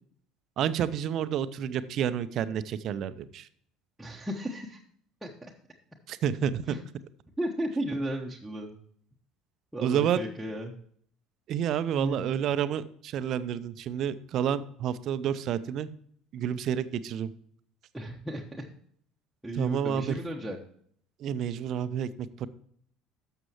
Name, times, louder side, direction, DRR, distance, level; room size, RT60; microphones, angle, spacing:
voice 1, 0.6-3.5 6.1-6.8 9.8-10.2 11.5-15.9 16.3-17.3 19.6-20.2 21.2-22.5, right 9 dB, 50° right, 14 dB, 0.6 m, -29 dB
voice 2, 4.0-4.8 5.2-5.3 6.7-6.8 7.4-8.8 9.7-10.7 11.9-12.2 17.9-18.7 19.4-20.6, right 1 dB, 5° right, -3 dB, 1.2 m, -34 dB
12.0 x 6.9 x 3.0 m, 0.63 s
figure-of-eight pair, 60°, 0 cm